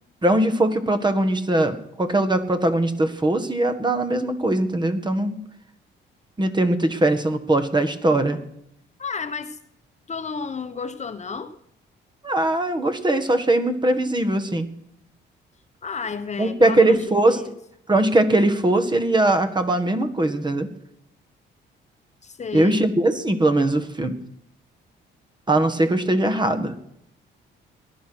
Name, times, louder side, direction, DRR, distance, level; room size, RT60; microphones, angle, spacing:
voice 1, 0.2-5.4 6.4-8.4 12.2-14.7 16.4-17.4 17.9-20.7 22.5-24.2 25.5-26.7, right 1 dB, 20° right, 9 dB, 1.7 m, -20 dB
voice 2, 9.0-9.6 10.1-11.6 15.8-17.5 22.2-22.9, left 5 dB, 35° left, 9 dB, 1.1 m, -32 dB
18.5 x 11.0 x 6.2 m, 0.76 s
cardioid pair, 90°, 20 cm